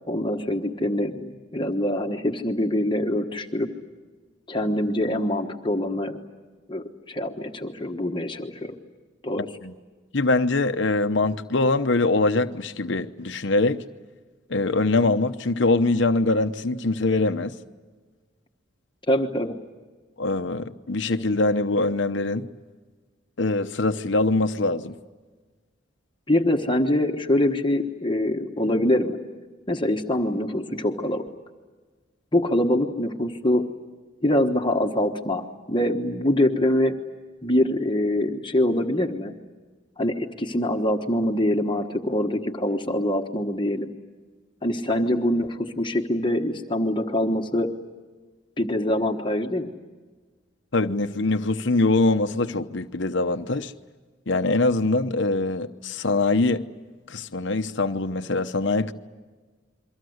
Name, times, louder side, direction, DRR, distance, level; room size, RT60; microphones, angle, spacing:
voice 1, 0.1-3.7 4.5-6.2 6.7-8.7 9.2-9.5 19.1-19.6 26.3-29.2 29.7-31.2 32.3-33.7 34.2-36.9 37.4-39.3 40.0-43.9 44.6-47.7 48.6-49.7, left 1 dB, 25° left, 4 dB, 1.3 m, -24 dB
voice 2, 10.1-13.8 14.5-17.5 20.2-22.5 23.4-24.9 50.7-53.7 54.3-56.6 57.1-58.9, left 2 dB, 65° left, 8 dB, 0.9 m, -23 dB
29.5 x 23.5 x 8.0 m, 1.4 s
head